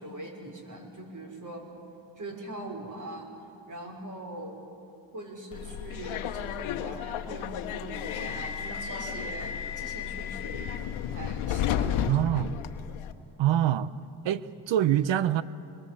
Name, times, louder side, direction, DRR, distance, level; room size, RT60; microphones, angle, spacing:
voice 1, 0.0-1.7 2.2-3.3 3.7-4.6 5.1-10.8 11.1-12.3, right 2 dB, 40° right, 5.8 m, -41 dB
Subway metro underground, 5.5-13.1, left 9 dB, 90° left, 1.2 m, -33 dB
voice 2, 12.1-12.5 13.4-13.9 14.2-15.4, right 11 dB, 70° right, 1.0 m, -25 dB
25.5 x 22.0 x 7.7 m
cardioid pair, 75°, 47 cm